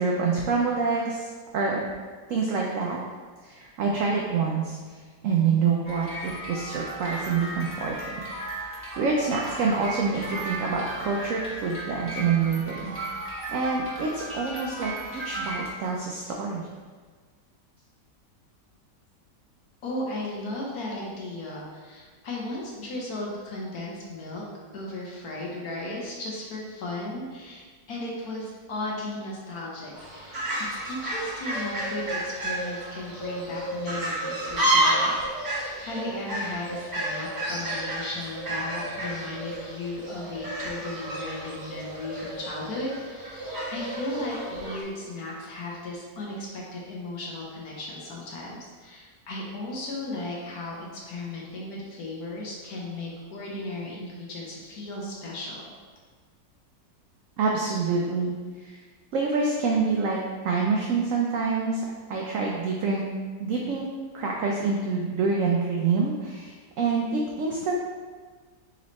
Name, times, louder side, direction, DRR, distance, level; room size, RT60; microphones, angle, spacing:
voice 1, 0.0-1.8 2.3-3.0 3.4-4.8 5.2-7.9 8.6-12.8 13.5-16.7 57.4-58.3 58.6-58.8 59.1-60.2 60.4-61.8 62.1-63.0 63.4-63.9 64.1-67.8, right 4 dB, 80° right, -1 dB, 0.7 m, -26 dB
The Dusty Attic of Dr. Benefucio, 5.8-15.7, right 1 dB, 10° right, 0.9 m, -36 dB
voice 2, 19.8-24.4 24.7-55.7, left 2 dB, 60° left, -3 dB, 1.3 m, -36 dB
Fowl, 29.9-44.8, right 1 dB, 40° right, 1.7 m, -30 dB
4.1 x 3.2 x 4.0 m, 1.5 s
omnidirectional pair, 1.9 m